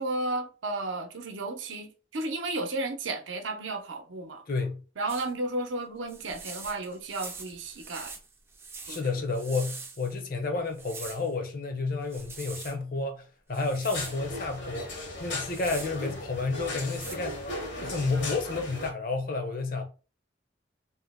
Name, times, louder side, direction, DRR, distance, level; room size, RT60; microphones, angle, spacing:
voice 1, 0.0-4.4 5.0-8.1 8.9-9.0, right 2 dB, 80° right, 0.6 m, -33 dB
voice 2, 4.5-4.8 8.9-17.5 17.8-19.9, left 3 dB, 50° left, 0.6 m, -31 dB
sound 1, 5.1-5.3 6.1-10.2 10.7-11.3 12.0-12.8 13.5-14.2 15.3-15.9 16.7-17.2, right 4 dB, 15° right, 0.3 m, -43 dB
sound 2, 13.9-18.9, left 1 dB, 75° left, 1.1 m, -37 dB
2.8 x 2.1 x 3.4 m
head